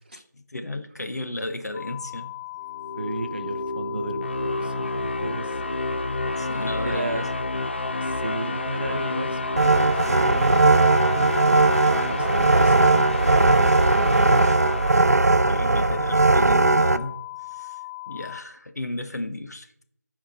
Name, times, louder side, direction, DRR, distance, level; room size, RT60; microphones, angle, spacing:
voice 1, 0.0-2.3 6.4-7.3 15.2-17.2 17.5-17.8 18.1-19.8, left 1 dB, 65° left, 7 dB, 1.2 m, -34 dB
sound 1, 1.7-18.4, left 21 dB, 25° left, 1.6 m, -38 dB
sound 2, 2.6-15.8, left 2 dB, 40° left, 0.4 m, -30 dB
voice 2, 2.9-5.8 6.8-7.3 8.0-14.5, right 2 dB, 35° right, 5 dB, 0.9 m, -35 dB
sound 3, 9.6-17.0, right 3 dB, 60° right, 0.6 m, -19 dB
14.5 x 5.0 x 4.3 m, 0.73 s
figure-of-eight pair, 170°, 9 cm